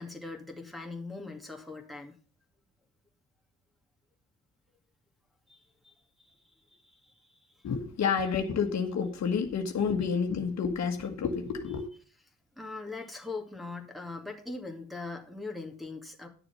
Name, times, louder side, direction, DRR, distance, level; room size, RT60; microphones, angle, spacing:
voice 1, 0.0-2.2 5.5-6.4 6.7-7.5 12.6-16.3, left 3 dB, ahead, 0 dB, 2.3 m, -41 dB
voice 2, 7.6-11.9, left 6 dB, 60° left, 5 dB, 1.6 m, -29 dB
11.0 x 6.9 x 5.6 m, 0.43 s
cardioid pair, 90°, 30 cm